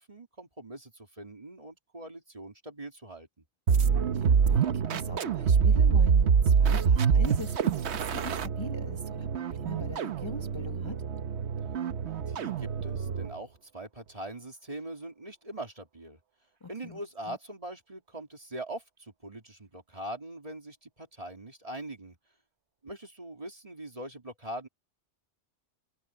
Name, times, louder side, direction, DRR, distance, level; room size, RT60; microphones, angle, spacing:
voice 1, 0.0-3.4 12.3-16.2 16.7-22.2 22.8-24.7, right 1 dB, 30° right, 2.6 m, -42 dB
sound 1, 3.7-13.4, right 6 dB, 70° right, 1.2 m, -26 dB
voice 2, 4.1-11.0 16.6-17.0 17.3-17.4, left 2 dB, 25° left, 1.3 m, -42 dB
omnidirectional pair, 1.2 m